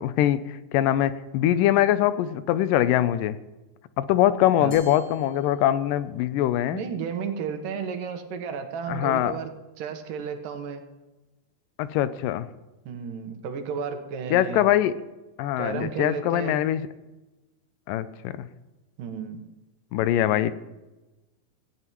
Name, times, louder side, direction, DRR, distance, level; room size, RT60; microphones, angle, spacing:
voice 1, 0.0-3.4 4.0-6.8 8.9-9.3 11.8-12.5 14.3-15.0 15.4-16.8 17.9-18.5 19.9-20.5, left 12 dB, 90° left, 14 dB, 2.3 m, -23 dB
Glass, 4.7-6.1, equal, 65° left, 4.9 m, -50 dB
voice 2, 6.7-9.5 9.8-10.8 12.9-14.7 15.6-16.6 19.0-19.4, right 6 dB, 90° right, 6 dB, 2.8 m, -33 dB
17.5 x 15.5 x 3.0 m, 1.1 s
omnidirectional pair, 3.8 m